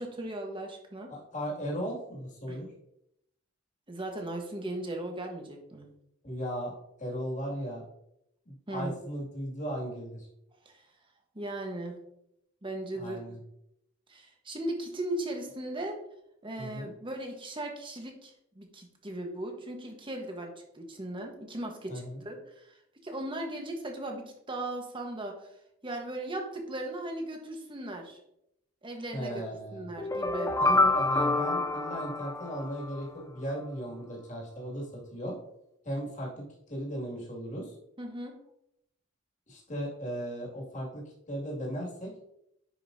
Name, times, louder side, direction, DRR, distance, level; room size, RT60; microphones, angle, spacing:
voice 1, 0.0-1.1 2.5-2.6 3.9-5.9 8.7-8.9 10.6-10.7 11.3-12.0 12.6-13.2 14.1-16.0 16.4-22.7 23.0-25.5 25.8-28.2 28.8-29.4 29.7-30.5 38.0-38.4, right 1 dB, 25° right, 2 dB, 1.3 m, -37 dB
voice 2, 1.1-2.7 6.2-7.8 8.5-10.3 13.0-13.4 16.6-16.9 21.9-22.2 29.1-29.9 30.6-35.4 35.8-36.4 36.7-37.8 39.5-42.2, equal, 40° left, -2 dB, 2.4 m, -36 dB
sound 1, 30.0-33.0, left 2 dB, 15° left, 0.5 m, -27 dB
10.0 x 5.4 x 2.7 m, 0.78 s
head